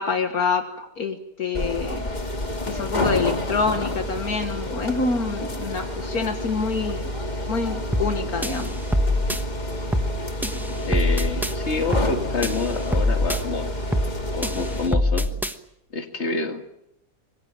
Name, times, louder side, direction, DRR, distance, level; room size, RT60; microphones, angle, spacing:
voice 1, 0.0-2.0 2.7-7.1 7.5-8.7, left 4 dB, 70° left, 6 dB, 2.0 m, -26 dB
sound 1, 1.5-14.9, left 1 dB, 25° left, 2.3 m, -29 dB
sound 2, 7.9-8.2 8.4-9.4 9.9-10.2 10.4-11.5 11.9-12.2 12.4-13.4 13.9-14.2 14.4-15.5, left 1 dB, ahead, 1.0 m, -23 dB
voice 2, 10.8-13.7 14.3-15.4 15.9-16.6, left 3 dB, 45° left, 5 dB, 2.4 m, -28 dB
25.0 x 21.5 x 7.7 m, 0.82 s
omnidirectional pair, 1.7 m